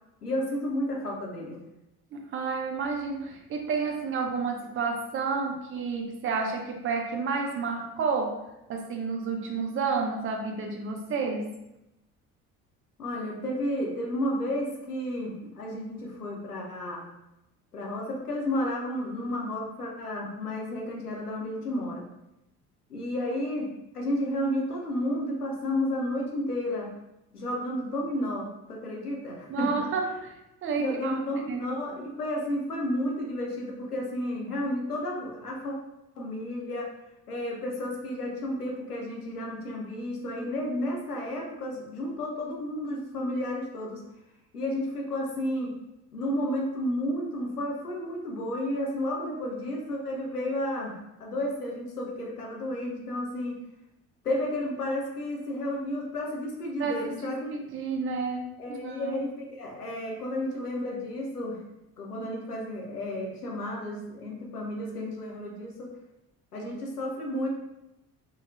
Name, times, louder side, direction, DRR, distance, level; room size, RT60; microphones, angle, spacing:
voice 1, 0.2-1.6 13.0-17.1 17.7-22.0 22.9-23.7 23.9-26.9 27.3-29.9 30.8-35.7 36.2-36.9 37.3-44.0 44.5-45.7 46.1-53.6 54.2-57.5 58.6-61.6 62.0-65.9 66.5-67.5, left 1 dB, 90° left, -1 dB, 0.6 m, -32 dB
voice 2, 2.1-8.4 8.7-11.6 29.5-30.3 30.6-31.2 31.5-31.6 56.8-59.2, right 4 dB, 30° right, 2 dB, 0.4 m, -30 dB
2.8 x 2.7 x 2.4 m, 0.91 s
figure-of-eight pair, 50°, 44 cm